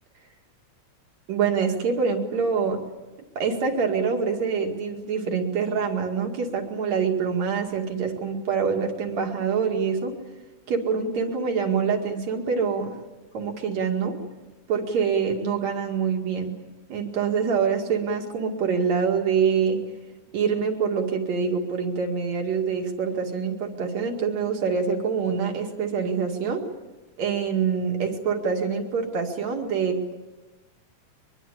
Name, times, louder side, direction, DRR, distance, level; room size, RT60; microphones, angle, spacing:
voice 1, 1.3-2.8 3.4-10.2 10.7-13.0 13.3-14.2 14.7-16.6 16.9-19.8 20.3-26.6 27.2-30.1, right 6 dB, 65° right, 2 dB, 3.4 m, -25 dB
23.0 x 22.5 x 8.4 m, 1.2 s
omnidirectional pair, 3.5 m